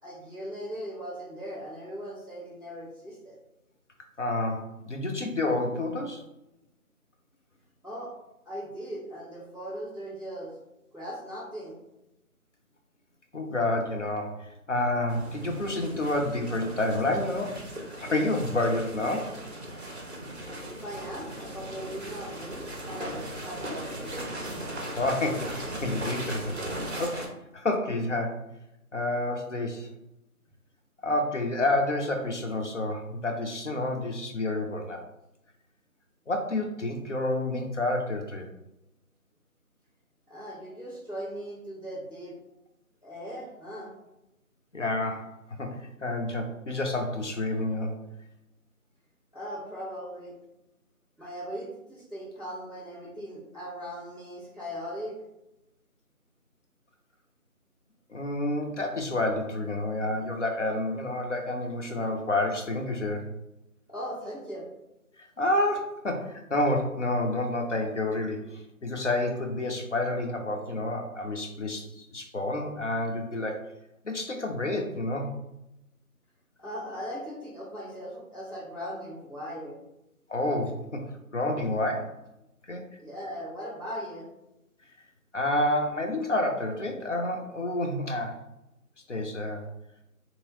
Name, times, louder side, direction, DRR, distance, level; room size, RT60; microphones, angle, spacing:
voice 1, 0.0-3.3 7.8-8.1 8.4-10.5 10.9-11.8 20.7-24.2 40.3-42.4 43.0-43.9 49.3-50.3 51.2-55.1 63.9-64.7 76.6-79.8 83.0-84.3, equal, 10° left, -18 dB, 1.4 m, -39 dB
voice 2, 4.2-6.2 13.3-19.3 24.9-26.5 27.0-27.3 27.5-28.4 28.9-29.9 31.0-35.0 36.3-38.4 44.7-45.3 45.6-48.1 58.1-63.3 65.4-73.6 74.0-75.3 80.3-81.1 81.3-82.1 82.7-82.8 85.3-88.4 89.1-89.6, left 2 dB, 55° left, 2 dB, 0.6 m, -29 dB
sound 1, 15.1-27.3, right 1 dB, 50° right, 0.7 m, -38 dB
3.0 x 3.0 x 2.7 m, 0.88 s
figure-of-eight pair, 165°, 44 cm